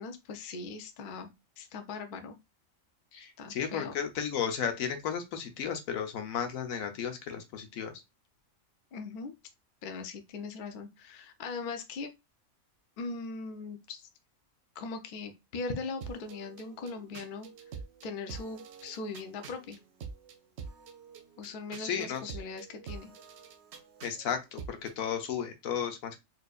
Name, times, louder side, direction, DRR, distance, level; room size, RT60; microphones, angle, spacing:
voice 1, 0.0-2.4 3.4-3.9 8.9-9.3 9.8-12.1 13.0-14.1 14.8-17.5 18.0-19.8 21.4-23.1, left 4 dB, 55° left, 0.6 m, -40 dB
voice 2, 3.1-7.9 21.8-22.4 24.0-26.2, left 8 dB, 85° left, 1.2 m, -34 dB
sound 1, 16.0-25.0, right 6 dB, 65° right, 0.8 m, -47 dB
4.3 x 2.5 x 2.4 m
omnidirectional pair, 1.4 m